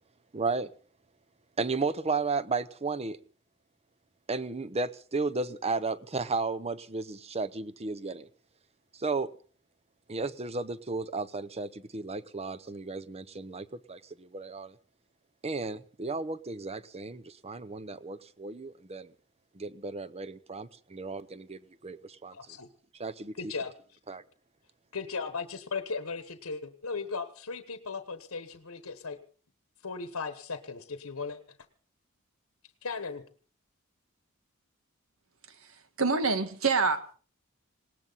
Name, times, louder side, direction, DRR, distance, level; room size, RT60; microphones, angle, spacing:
voice 1, 0.3-0.7 1.6-3.2 4.3-8.3 8.9-9.3 10.1-14.8 15.4-19.1 19.5-22.6 23.0-23.5 24.1-24.2, right 3 dB, 30° right, 13 dB, 0.8 m, -34 dB
voice 2, 22.3-22.7 23.3-23.7 24.9-29.2 29.8-31.4 32.8-33.2, left 4 dB, 85° left, 9 dB, 1.2 m, -37 dB
voice 3, 36.0-37.1, right 4 dB, 70° right, 9 dB, 1.7 m, -26 dB
19.5 x 18.5 x 4.0 m, 0.41 s
head